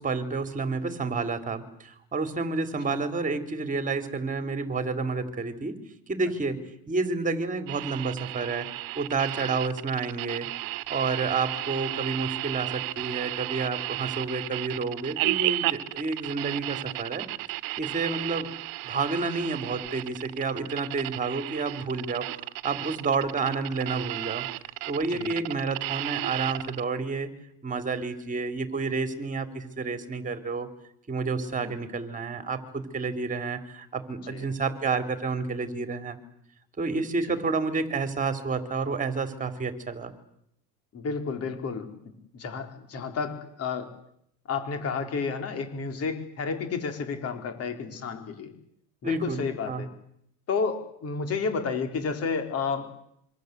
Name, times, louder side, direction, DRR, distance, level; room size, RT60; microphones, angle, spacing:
voice 1, 0.0-5.8 6.1-6.6 6.9-8.7 8.9-17.3 17.8-18.5 18.8-24.5 24.9-27.3 27.6-30.7 31.1-36.2 36.8-40.1 49.0-49.8, right 4 dB, 20° right, 8 dB, 3.6 m, -30 dB
sound 1, 7.7-26.8, right 19 dB, 70° right, 1.2 m, -33 dB
voice 2, 25.1-25.5 31.5-31.9 34.3-34.5 37.3-37.4 40.9-41.9 42.3-43.9 44.5-48.5 49.0-49.9 50.5-52.9, left 5 dB, 45° left, 6 dB, 4.9 m, -31 dB
27.0 x 25.0 x 8.3 m, 0.72 s
cardioid pair, 140°, 35 cm